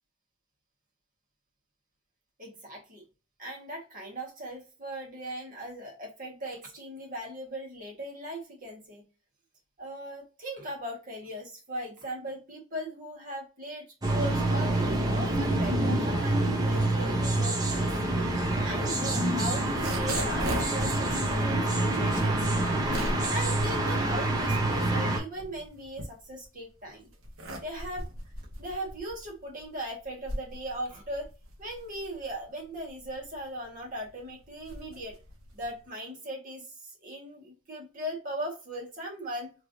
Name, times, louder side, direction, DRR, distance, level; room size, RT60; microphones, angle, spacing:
voice 1, 2.4-3.0 3.4-9.0 9.8-17.9 18.6-22.5 23.3-27.1 27.6-28.0 28.6-31.3 31.6-35.1 35.5-39.5, right 1 dB, 40° right, -2 dB, 1.5 m, -39 dB
sound 1, 14.0-25.2, right 2 dB, 15° right, 0.8 m, -27 dB
sound 2, 19.6-24.8 25.2-26.6 27.1-35.9, right 1 dB, 75° right, 1.1 m, -38 dB
3.3 x 3.0 x 2.6 m, 0.31 s
head